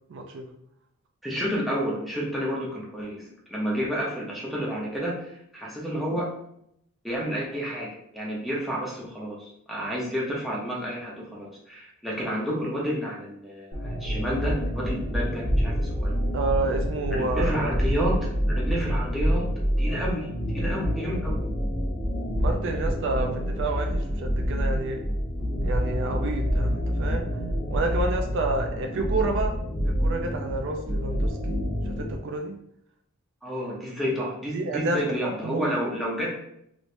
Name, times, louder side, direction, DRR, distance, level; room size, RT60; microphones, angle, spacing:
voice 1, 0.1-0.5 16.3-17.7 22.4-25.0 25.6-27.3 27.7-29.5 29.9-31.6 31.9-32.6 34.5-35.7, right 3 dB, 60° right, 3 dB, 0.4 m, -30 dB
voice 2, 1.2-6.3 7.0-16.2 17.1-19.5 19.8-21.5 33.4-36.3, equal, ahead, -6 dB, 0.8 m, -30 dB
sound 1, 13.7-32.2, equal, 45° left, 1.0 m, -27 dB
3.1 x 3.0 x 2.6 m, 0.74 s
head